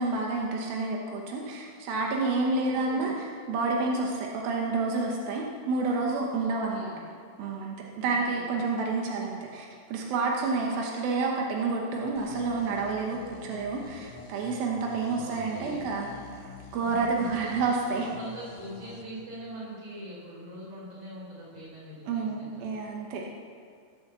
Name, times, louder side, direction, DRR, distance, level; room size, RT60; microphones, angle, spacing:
voice 1, 0.0-6.9 7.4-18.1 22.1-23.3, right 3 dB, 90° right, -1 dB, 3.0 m, -29 dB
voice 2, 2.5-3.1 6.3-7.0 8.0-8.5 15.0-15.9 16.8-22.7, right 1 dB, 45° right, -5 dB, 5.2 m, -43 dB
sound 1, 12.2-19.0, left 5 dB, 70° left, 2.7 m, -47 dB
16.5 x 7.1 x 6.9 m, 2.1 s
omnidirectional pair, 4.1 m